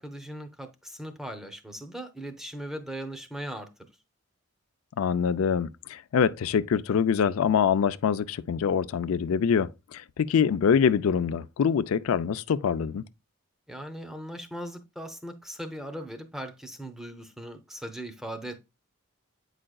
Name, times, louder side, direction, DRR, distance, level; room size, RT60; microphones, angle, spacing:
voice 1, 0.0-3.7 13.7-18.6, right 1 dB, ahead, 0.6 m, -39 dB
voice 2, 5.0-13.0, left 7 dB, 80° left, 0.4 m, -25 dB
8.6 x 4.9 x 2.3 m
head